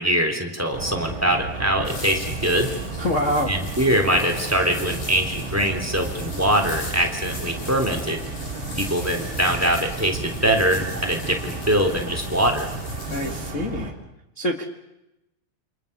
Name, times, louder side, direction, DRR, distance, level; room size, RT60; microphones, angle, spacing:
voice 1, 0.0-2.7 3.5-8.2 8.8-12.7, equal, 5° right, 4 dB, 2.8 m, -23 dB
sound 1, 0.7-13.9, right 2 dB, 30° right, 3.9 m, -33 dB
sound 2, 1.9-13.5, left 2 dB, 60° left, 9.2 m, -40 dB
voice 2, 3.0-3.5 13.1-13.9 14.4-14.6, equal, 85° left, 2 dB, 0.6 m, -25 dB
28.5 x 26.0 x 6.8 m, 0.92 s
omnidirectional pair, 4.6 m